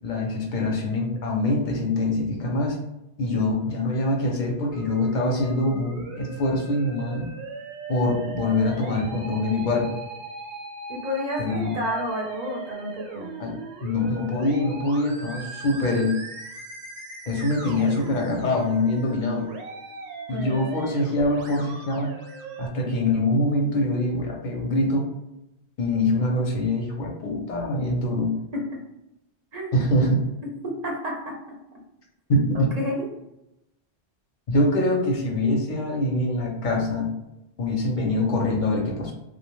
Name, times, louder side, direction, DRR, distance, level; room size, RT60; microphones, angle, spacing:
voice 1, 0.0-2.8 3.2-7.3 7.9-9.9 11.4-11.7 13.4-13.5 13.8-16.2 17.3-19.5 20.3-22.1 22.6-25.0 25.8-28.3 29.7-30.2 32.3-32.7 34.5-37.1 37.6-39.1, left 1 dB, 55° left, 0 dB, 0.6 m, -24 dB
Musical instrument, 4.7-22.7, right 3 dB, 80° right, 0.8 m, -39 dB
voice 2, 10.9-13.3 20.3-20.6 28.5-28.6 29.5-29.8 30.8-31.2 32.5-33.1, left 1 dB, 45° right, -2 dB, 0.7 m, -30 dB
2.3 x 2.1 x 3.0 m, 0.90 s
omnidirectional pair, 1.1 m